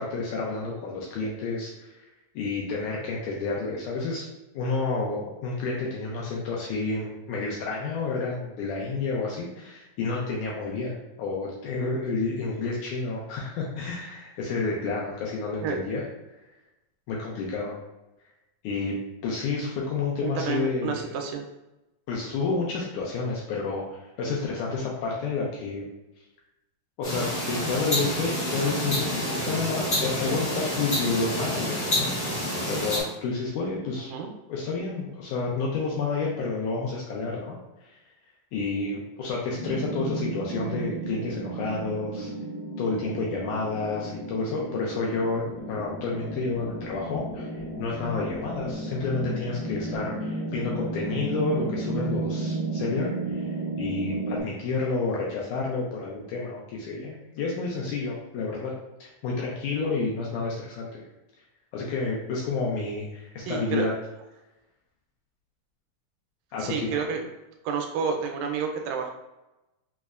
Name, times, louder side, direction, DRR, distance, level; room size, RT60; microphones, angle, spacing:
voice 1, 0.0-1.9 2.3-4.3 4.5-16.0 17.1-17.8 18.6-19.0 19.2-21.0 22.1-25.9 27.0-32.1 32.6-34.1 34.5-37.9 38.5-42.3 42.8-58.7 59.0-61.0 61.7-63.9 66.5-67.0, left 4 dB, 85° left, -3 dB, 1.7 m, -30 dB
voice 2, 20.2-21.4 34.0-34.3 63.4-63.9 66.6-67.2 67.6-69.1, right 6 dB, 85° right, 3 dB, 2.3 m, -30 dB
sound 1, 27.0-33.0, equal, 70° left, 0.7 m, -28 dB
sound 2, 39.6-54.4, right 2 dB, 70° right, 1.0 m, -33 dB
5.3 x 2.0 x 2.4 m, 0.98 s
omnidirectional pair, 4.0 m